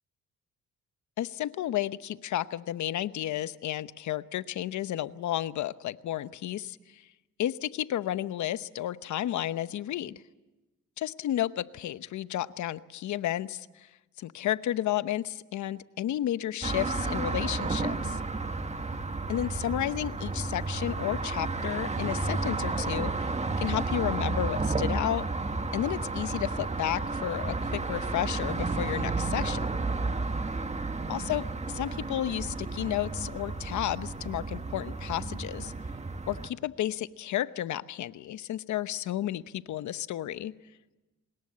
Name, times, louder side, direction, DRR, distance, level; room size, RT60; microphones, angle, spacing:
voice 1, 1.2-7.0 7.4-10.2 11.0-13.9 14.2-18.2 19.3-25.2 25.7-29.7 31.1-35.7 36.3-40.5, left 12 dB, 70° left, 14 dB, 0.9 m, -32 dB
sound 1, 16.6-36.5, right 3 dB, 20° right, 1.6 m, -32 dB
25.0 x 20.5 x 8.6 m, 1.1 s
cardioid pair, 90°, 30 cm